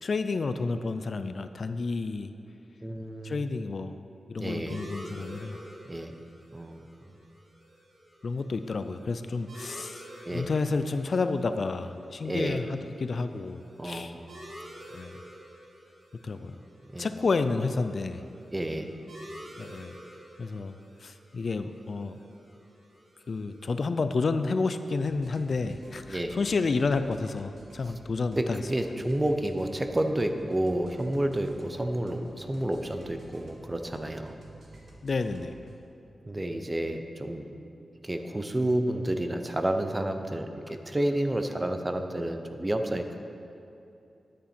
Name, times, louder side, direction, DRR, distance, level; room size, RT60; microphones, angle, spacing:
voice 1, 0.0-2.3 3.2-4.0 4.3-5.6 8.2-14.1 14.9-15.2 16.2-16.6 17.0-18.2 19.6-20.0 20.4-20.8 21.0-22.2 23.3-28.6 35.0-35.5, left 4 dB, 50° left, 10 dB, 0.3 m, -30 dB
voice 2, 2.8-3.4 4.4-4.8 5.9-6.1 6.5-7.0 10.3-10.5 12.2-12.6 13.8-14.2 16.9-17.1 18.5-18.9 26.1-26.4 28.4-34.3 36.3-37.5 38.0-43.2, right 1 dB, 15° right, 6 dB, 0.5 m, -30 dB
sound 1, 4.7-23.8, equal, 85° right, 2.3 m, -49 dB
sound 2, 25.0-35.8, right 1 dB, 65° right, 1.5 m, -52 dB
9.9 x 8.3 x 4.4 m, 2.7 s
wide cardioid pair, 135°, 0 cm